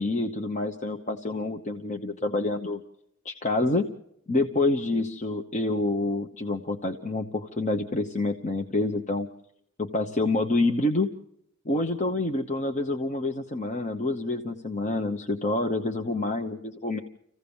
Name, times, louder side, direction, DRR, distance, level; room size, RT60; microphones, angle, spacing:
voice 1, 0.0-2.8 3.2-3.9 4.3-9.3 9.8-11.1 11.6-17.0, left 2 dB, 35° left, 4 dB, 0.9 m, -27 dB
26.5 x 16.0 x 7.1 m, 0.78 s
head